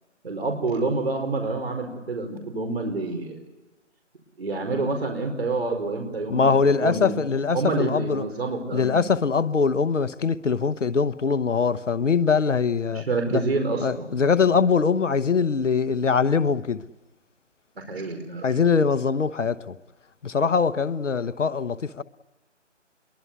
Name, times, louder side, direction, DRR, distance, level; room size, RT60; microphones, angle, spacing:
voice 1, 0.2-3.4 4.4-6.5 6.8-7.2 7.5-8.9 12.9-14.1 17.8-18.5, right 3 dB, 55° right, 5.0 m, -27 dB
voice 2, 6.3-8.2 8.7-13.0 13.3-13.4 13.8-16.8 18.4-19.8 20.2-22.0, left 5 dB, 80° left, 1.0 m, -22 dB
25.5 x 23.0 x 8.2 m
figure-of-eight pair, 165°, 37 cm